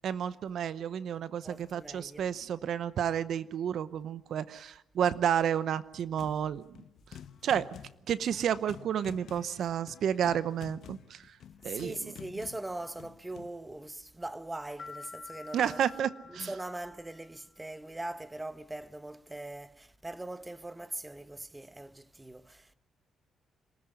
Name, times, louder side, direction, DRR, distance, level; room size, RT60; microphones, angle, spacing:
voice 1, 0.0-6.8 7.4-7.7 8.1-11.4 11.6-12.1 15.5-16.5, right 9 dB, 65° right, 0.8 m, -31 dB
voice 2, 1.4-2.3 11.6-15.8 16.3-22.8, right 2 dB, 15° right, 1.0 m, -41 dB
sound 1, 6.1-6.5 6.8-13.5, left 9 dB, 70° left, 1.0 m, -49 dB
sound 2, 14.8-17.4, left 4 dB, 35° left, 1.1 m, -49 dB
26.5 x 14.0 x 9.8 m
cardioid pair, 90°, 0 cm